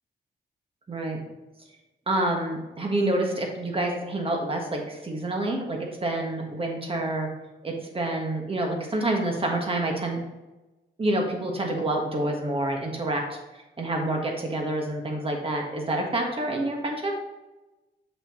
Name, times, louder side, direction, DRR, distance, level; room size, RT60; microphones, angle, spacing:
voice 1, 0.9-1.2 2.1-7.3 7.6-10.2 11.0-13.2 13.8-17.1, right 1 dB, 30° right, 1 dB, 1.4 m, -27 dB
6.9 x 5.8 x 3.1 m, 1.1 s
cardioid pair, 120°, 18 cm